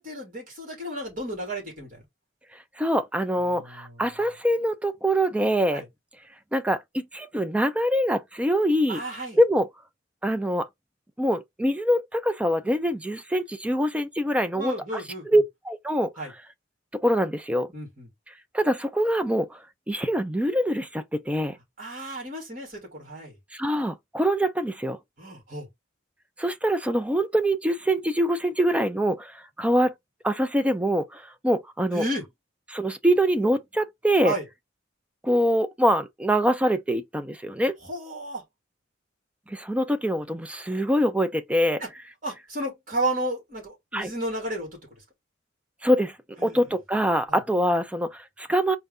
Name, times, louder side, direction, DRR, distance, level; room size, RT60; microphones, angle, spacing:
voice 1, 0.0-2.0 3.4-4.0 5.7-5.8 8.9-9.4 14.6-15.4 16.2-16.3 17.7-18.1 21.8-23.4 25.2-25.7 31.9-32.2 34.2-34.4 37.8-38.4 42.2-44.8 46.4-46.6 47.3-47.4, right 1 dB, 45° right, 2.7 m, -33 dB
voice 2, 2.8-5.8 6.5-9.0 9.3-9.7 10.2-10.7 11.2-16.3 16.9-17.7 18.5-19.6 19.9-21.6 23.5-25.0 26.4-29.9 30.2-32.0 32.7-34.3 35.2-37.8 39.5-41.8 43.9-44.1 45.8-46.2 46.4-48.8, equal, 5° right, 0.4 m, -24 dB
4.4 x 2.6 x 3.4 m
head